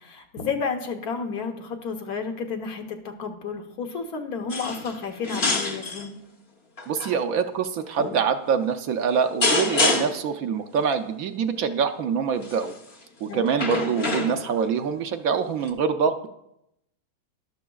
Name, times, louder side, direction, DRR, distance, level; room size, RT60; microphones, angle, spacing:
voice 1, 0.0-6.2 13.3-13.5, left 5 dB, 70° left, 5 dB, 1.5 m, -31 dB
sound 1, 4.5-5.0 5.2-6.1 6.8-7.1 8.0-8.2 9.4-10.3 12.4-12.7 13.5-14.6 15.7-15.8, left 3 dB, 45° left, 1.1 m, -26 dB
voice 2, 6.9-12.7 13.2-16.3, right 6 dB, 70° right, 7 dB, 1.0 m, -25 dB
12.0 x 12.0 x 2.3 m, 0.82 s
omnidirectional pair, 1.7 m